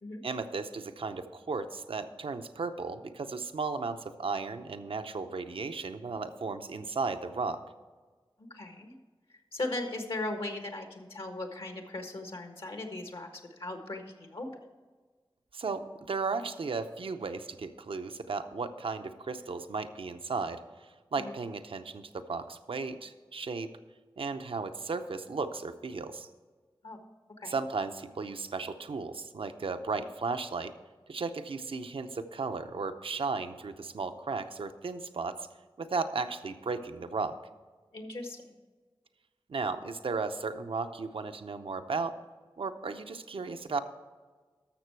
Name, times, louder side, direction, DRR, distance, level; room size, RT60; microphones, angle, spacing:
voice 1, 0.2-7.6 15.5-20.6 21.1-23.7 24.2-26.3 27.5-30.7 31.1-35.5 35.8-37.4 39.5-42.2 42.6-43.8, right 4 dB, 85° right, 8 dB, 0.7 m, -35 dB
voice 2, 8.5-8.9 9.5-14.5 21.2-21.3 26.8-27.0 27.4-27.5 37.9-38.6, left 2 dB, 80° left, 4 dB, 1.5 m, -38 dB
13.0 x 6.7 x 4.6 m, 1.4 s
cardioid pair, 45°, 9 cm